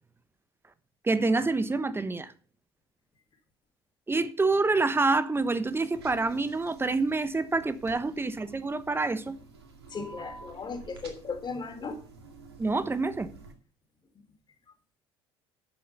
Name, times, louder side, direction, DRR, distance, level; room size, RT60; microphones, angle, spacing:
voice 1, 1.0-2.3 4.1-9.4 12.6-13.3, right 3 dB, 15° right, 1.2 m, -27 dB
sound 1, 5.3-13.5, right 4 dB, 85° right, 2.1 m, -51 dB
voice 2, 9.9-12.0, left 4 dB, 35° left, 4.1 m, -36 dB
11.0 x 7.6 x 5.8 m
hypercardioid pair, 65°, 13 cm